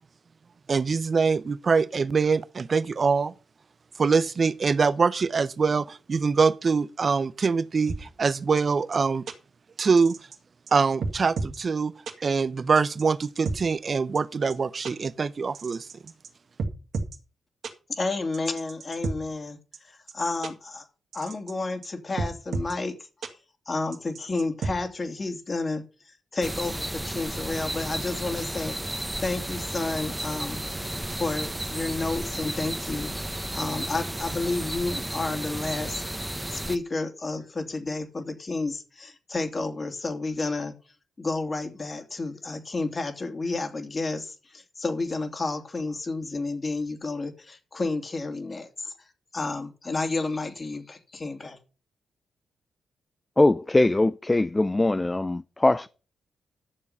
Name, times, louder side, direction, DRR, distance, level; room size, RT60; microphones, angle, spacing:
voice 1, 0.7-3.3 4.0-9.3 9.8-10.2 10.7-11.9 12.2-15.9, right 5 dB, 50° right, 0.8 m, -24 dB
sound 1, 7.9-8.0 8.6-8.7 8.9-9.0 9.3-9.4 10.0-10.4 10.7-10.8 11.0-11.6 12.1-12.2 12.8-13.6 14.2-14.3 14.5-14.6 14.8-14.9 15.6-16.3 16.6-17.2 17.6-17.7 18.3-19.2 19.7-19.8 20.1-20.2 20.4-20.5 21.1-21.5 21.8-21.9 22.2-22.7 23.2-23.3 23.9-24.7, right 3 dB, 65° right, 1.9 m, -31 dB
voice 2, 17.9-20.8 21.1-22.9 23.3-23.4 23.7-30.6 31.2-33.2 33.5-36.0 36.5-40.7 41.2-48.9 49.3-51.6, left 3 dB, 40° left, 2.9 m, -31 dB
sound 2, 26.4-36.8, right 1 dB, 10° right, 1.3 m, -33 dB
voice 3, 53.4-55.9, left 2 dB, 25° left, 0.5 m, -21 dB
12.0 x 7.1 x 5.6 m
supercardioid pair, 45°, 0 cm